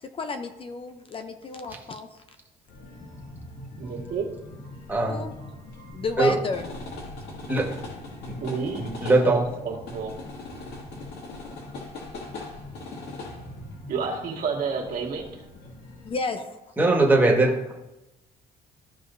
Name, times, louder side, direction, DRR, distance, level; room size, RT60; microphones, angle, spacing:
voice 1, 0.0-2.1 5.1-5.3 5.9-6.7 16.1-16.6, left 3 dB, 35° left, 7 dB, 0.7 m, -31 dB
sound 1, 2.7-16.1, left 2 dB, 75° left, 2.2 m, -41 dB
voice 2, 3.8-4.3 8.4-10.1 13.9-15.4, right 5 dB, 60° right, 0 dB, 2.0 m, -30 dB
voice 3, 4.9-5.2 6.2-6.3 7.5-7.7 8.8-9.4 16.8-17.5, right 2 dB, 10° right, -1 dB, 1.7 m, -20 dB
14.0 x 4.9 x 2.7 m, 0.99 s
cardioid pair, 110°, 17 cm